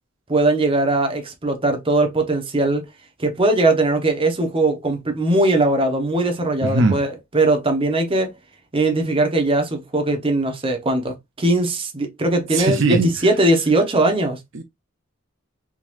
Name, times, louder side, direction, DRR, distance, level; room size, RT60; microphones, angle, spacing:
voice 1, 0.3-2.8 3.2-8.3 8.7-14.4, right 2 dB, 25° right, 0.9 m, -20 dB
voice 2, 6.6-7.0 12.5-13.1 14.5-14.6, right 2 dB, 65° right, 0.6 m, -19 dB
3.7 x 3.1 x 2.5 m
head